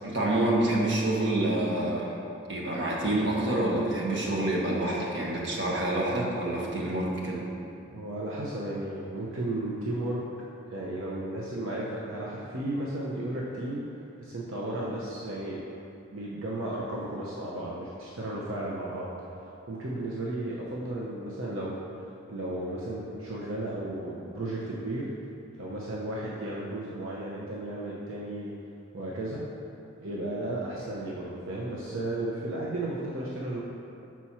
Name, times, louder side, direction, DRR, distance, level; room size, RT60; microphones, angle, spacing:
voice 1, 0.0-2.1 2.5-7.4, right 1 dB, 55° right, -4 dB, 1.2 m, -27 dB
voice 2, 7.9-10.2 10.7-13.8 14.2-15.6 16.1-19.1 19.7-21.8 22.3-25.1 25.6-28.5 28.9-29.4 30.0-33.6, right 1 dB, 80° right, -5 dB, 0.8 m, -34 dB
6.0 x 4.2 x 5.9 m, 2.7 s
head